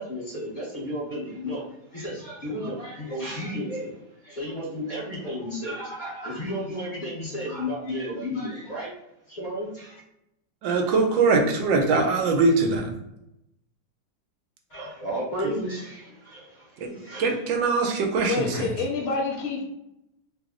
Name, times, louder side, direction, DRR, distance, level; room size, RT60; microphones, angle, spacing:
voice 1, 0.0-8.9 9.3-10.0 14.7-17.4, equal, 35° left, -6 dB, 0.8 m, -33 dB
voice 2, 10.6-12.9 15.4-15.5 16.8-18.6, right 3 dB, 90° right, 3 dB, 1.4 m, -22 dB
voice 3, 18.3-19.6, left 4 dB, 55° left, -1 dB, 1.2 m, -27 dB
3.2 x 2.0 x 3.6 m, 0.85 s
omnidirectional pair, 2.0 m